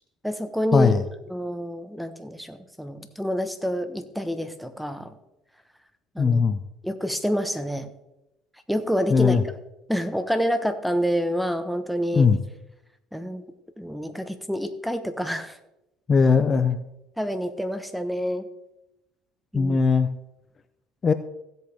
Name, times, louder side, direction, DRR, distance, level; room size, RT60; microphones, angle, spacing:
voice 1, 0.2-0.9 1.3-5.1 6.1-6.4 6.8-7.9 8.7-9.4 9.9-12.3 13.1-13.4 13.8-15.6 17.2-18.5 19.5-19.8, equal, ahead, 10 dB, 1.1 m, -27 dB
voice 2, 6.2-6.6 9.1-9.4 12.1-12.4 16.1-16.8 19.5-20.1 21.0-21.1, left 5 dB, 35° left, 10 dB, 0.6 m, -19 dB
16.0 x 8.0 x 3.5 m, 0.91 s
supercardioid pair, 90°, 0 cm